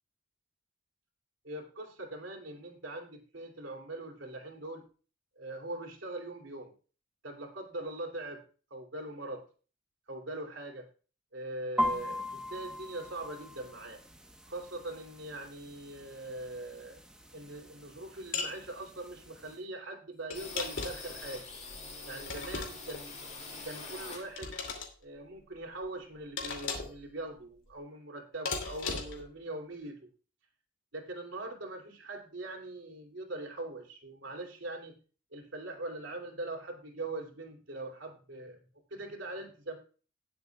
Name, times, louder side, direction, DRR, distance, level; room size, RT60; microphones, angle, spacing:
voice 1, 1.4-4.8 5.4-6.7 7.2-8.4 8.7-9.4 10.1-10.9 11.3-14.0 14.5-17.0 17.3-21.4 22.1-23.2 23.6-24.5 25.0-30.1 30.9-35.0 35.3-38.6 38.9-39.8, right 2 dB, 65° right, 2 dB, 2.9 m, -42 dB
sound 1, 11.8-19.6, left 1 dB, 5° right, 1.1 m, -40 dB
sound 2, 18.3-18.6 20.3-21.1 22.3-23.0 24.4-24.9 26.4-27.0 28.5-29.3, left 4 dB, 70° left, 2.7 m, -36 dB
sound 3, 20.3-24.7 25.0-26.4 26.7-26.8 27.1-27.8, left 3 dB, 35° left, 5.2 m, -45 dB
18.5 x 7.7 x 2.4 m, 0.37 s
head